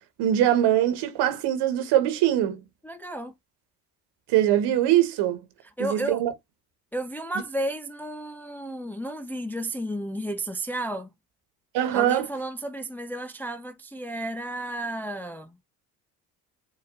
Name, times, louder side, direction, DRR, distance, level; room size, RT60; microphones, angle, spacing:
voice 1, 0.2-2.6 4.3-5.4 5.8-6.3 11.7-12.3, right 12 dB, 55° right, 1.4 m, -22 dB
voice 2, 2.8-3.3 5.8-6.2 6.9-11.1 11.9-15.6, right 1 dB, 5° left, 0.5 m, -32 dB
7.3 x 2.9 x 2.5 m
figure-of-eight pair, 55°, 47 cm